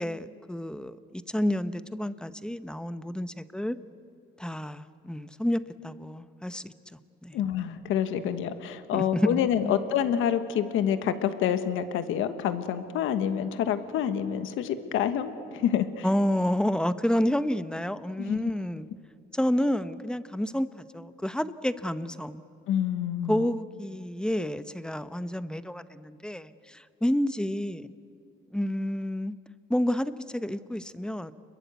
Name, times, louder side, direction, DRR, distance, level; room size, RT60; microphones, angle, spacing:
voice 1, 0.0-3.8 4.4-6.7 7.2-7.4 8.9-9.7 16.0-18.9 19.3-20.7 20.9-22.4 23.3-27.9 28.5-29.4 29.7-31.3, left 1 dB, 5° left, 12 dB, 0.9 m, -29 dB
voice 2, 7.3-16.1 18.2-18.4 22.7-23.4, left 9 dB, 90° left, 10 dB, 1.4 m, -27 dB
29.0 x 22.0 x 8.3 m, 2.4 s
cardioid pair, 90°, 20 cm